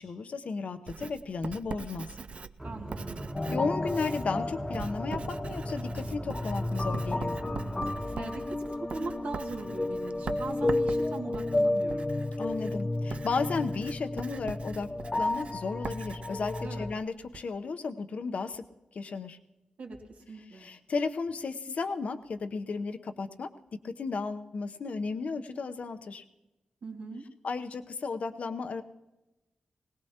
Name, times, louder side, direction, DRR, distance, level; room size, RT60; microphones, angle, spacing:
voice 1, 0.0-2.1 3.5-7.4 12.4-14.9 15.2-18.6 18.9-19.4 20.5-23.5 23.8-26.2 27.4-28.8, left 4 dB, 65° left, 8 dB, 0.8 m, -34 dB
Writing, 0.9-17.5, right 5 dB, 55° right, 0.4 m, -43 dB
sound 1, 2.6-8.3, right 1 dB, 5° right, 1.1 m, -41 dB
voice 2, 2.6-3.2 8.2-12.1 16.6-16.9 19.8-20.0 20.3-20.7 26.8-27.2, right 3 dB, 80° right, 0 dB, 2.2 m, -40 dB
sound 2, 3.3-16.9, left 2 dB, 25° left, 0.4 m, -32 dB
20.5 x 19.0 x 2.9 m, 1.0 s
wide cardioid pair, 125°, 2 cm